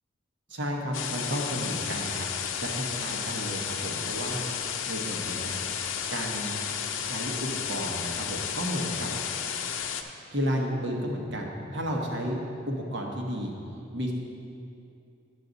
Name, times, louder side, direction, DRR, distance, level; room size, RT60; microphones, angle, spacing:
voice 1, 0.5-4.5 4.9-5.5 6.1-6.6 7.0-9.1 10.3-13.5 13.9-14.1, equal, 65° right, 0 dB, 1.2 m, -32 dB
sound 1, 0.9-10.0, left 8 dB, 75° left, 0.6 m, -32 dB
9.8 x 7.6 x 4.0 m, 2.6 s
head